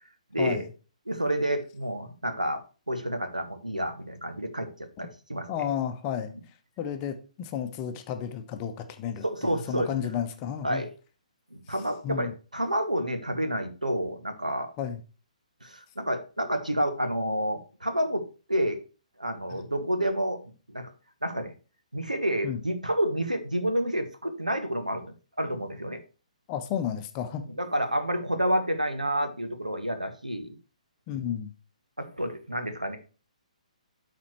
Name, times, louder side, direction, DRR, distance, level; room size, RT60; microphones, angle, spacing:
voice 1, 0.3-0.6 1.1-5.5 9.2-9.9 10.6-10.9 11.5-14.7 15.6-18.8 19.2-20.9 21.2-21.5 21.9-26.0 27.4-30.5 32.0-33.0, equal, 85° right, 7 dB, 1.2 m, -29 dB
voice 2, 5.5-6.3 6.8-10.8 11.7-12.3 14.8-15.0 19.5-19.6 22.4-22.6 26.5-27.4 31.1-31.5, left 9 dB, 25° left, 7 dB, 0.8 m, -32 dB
12.5 x 4.2 x 3.1 m, 0.34 s
figure-of-eight pair, 130°, 4 cm